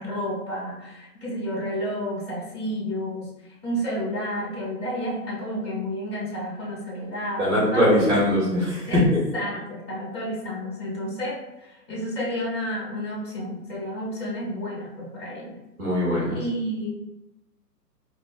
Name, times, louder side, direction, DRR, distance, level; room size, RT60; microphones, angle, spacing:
voice 1, 0.0-3.2 3.6-8.0 8.9-9.0 9.3-11.4 11.9-15.5 16.3-16.9, equal, 10° right, -9 dB, 0.4 m, -30 dB
voice 2, 7.4-9.0 15.8-16.4, left 1 dB, 45° right, -5 dB, 1.4 m, -21 dB
4.0 x 2.2 x 2.3 m, 0.92 s
figure-of-eight pair, 130°, 50 cm